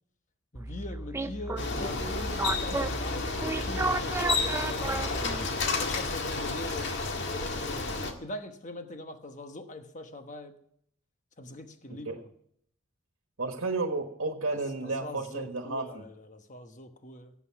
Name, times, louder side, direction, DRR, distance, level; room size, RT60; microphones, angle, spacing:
voice 1, 0.5-5.4 5.7-7.8 8.2-10.5 11.4-12.3 14.5-17.3, left 1 dB, 35° left, 7 dB, 1.2 m, -43 dB
sound 1, 0.5-5.6, right 2 dB, 15° right, 0.5 m, -33 dB
Bicycle, 1.6-8.1, left 3 dB, 60° left, 1.7 m, -31 dB
voice 2, 13.4-16.0, right 3 dB, 75° right, 5 dB, 1.4 m, -32 dB
17.5 x 8.4 x 5.8 m, 0.70 s
head